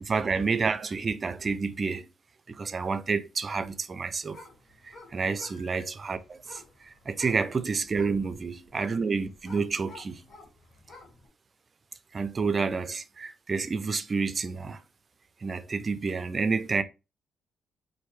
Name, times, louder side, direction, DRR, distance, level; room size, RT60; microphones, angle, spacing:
voice 1, 0.0-2.1 2.5-4.4 4.8-10.2 12.1-14.8 15.4-16.8, right 4 dB, 35° right, 0.5 m, -29 dB
sound 1, 3.9-11.3, left 2 dB, 55° left, 1.9 m, -51 dB
4.3 x 2.6 x 3.1 m
cardioid pair, 90°, 0 cm